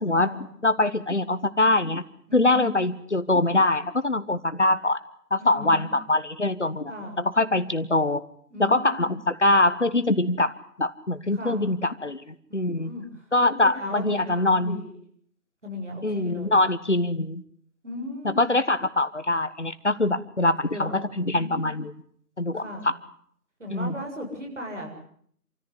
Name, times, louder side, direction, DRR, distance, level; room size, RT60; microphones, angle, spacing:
voice 1, 0.0-0.3 0.6-2.0 2.3-5.0 5.3-6.9 7.2-8.2 8.6-12.9 13.3-14.8 16.0-17.4 18.2-21.9 22.4-22.9 23.7-23.9, left 2 dB, 45° left, 12 dB, 1.4 m, -23 dB
voice 2, 2.3-2.7 5.4-5.9 6.9-7.2 8.5-9.2 11.3-11.6 12.5-13.1 13.4-14.9 15.6-16.6 17.8-18.4 20.6-21.7 22.5-22.9 23.6-24.9, left 1 dB, 50° right, 2 dB, 7.3 m, -37 dB
27.5 x 14.5 x 9.8 m, 0.63 s
figure-of-eight pair, 170°, 47 cm